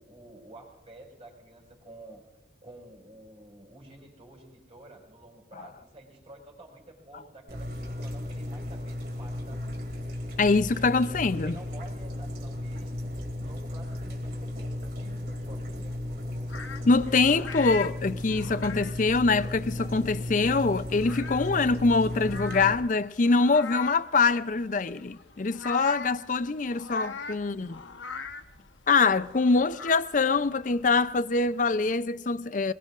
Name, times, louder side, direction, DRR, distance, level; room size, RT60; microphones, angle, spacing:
voice 1, 0.0-2.2 2.6-9.9 10.8-13.1 13.4-16.0, right 1 dB, 30° right, 5.4 m, -50 dB
sound 1, 7.5-22.7, left 1 dB, 55° right, 2.6 m, -35 dB
voice 2, 10.4-11.6 16.9-27.8 28.9-32.7, left 4 dB, 40° left, 0.5 m, -24 dB
sound 2, 16.5-32.0, left 6 dB, 80° left, 1.1 m, -42 dB
25.5 x 21.5 x 2.5 m
head